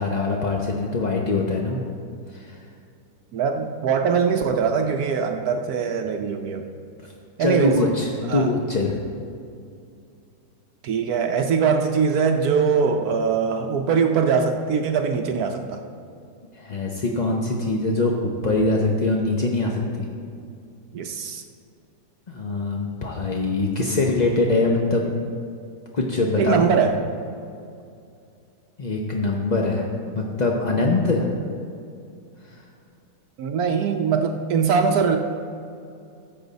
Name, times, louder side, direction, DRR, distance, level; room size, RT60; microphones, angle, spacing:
voice 1, 0.0-1.8 2.3-2.6 7.0-7.1 7.4-9.0 16.5-20.1 22.3-25.0 25.9-26.6 28.8-29.9 30.1-31.3 32.5-32.6, left 2 dB, 50° left, -1 dB, 0.5 m, -23 dB
voice 2, 3.3-6.6 7.4-7.8 8.3-8.5 10.8-15.8 20.9-21.4 26.4-27.0 33.4-35.2, right 6 dB, 70° right, 5 dB, 1.1 m, -22 dB
13.5 x 7.9 x 4.0 m, 2.4 s
omnidirectional pair, 1.9 m